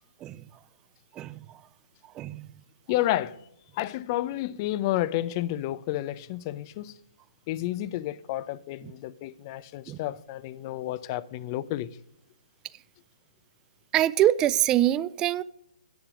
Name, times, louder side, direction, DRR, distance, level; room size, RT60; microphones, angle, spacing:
voice 1, 2.2-2.5 9.9-10.0 13.9-15.4, right 12 dB, 20° right, 0.3 m, -24 dB
voice 2, 2.9-3.4 3.7-7.0 7.5-12.0, left 14 dB, 35° left, 0.5 m, -31 dB
10.0 x 8.2 x 5.0 m
hypercardioid pair, 140°, 4 cm